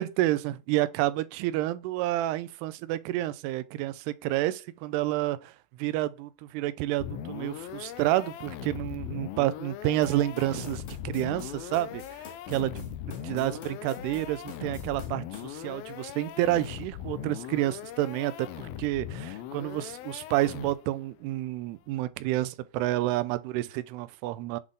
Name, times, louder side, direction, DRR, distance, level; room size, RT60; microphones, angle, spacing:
voice 1, 0.0-5.5 5.8-12.9 13.2-24.6, right 15 dB, 90° right, 2.6 m, -29 dB
sound 1, 7.0-21.1, left 11 dB, 80° left, 2.2 m, -40 dB
sound 2, 10.0-15.4, left 4 dB, 55° left, 1.7 m, -46 dB
8.0 x 3.6 x 3.6 m
omnidirectional pair, 4.6 m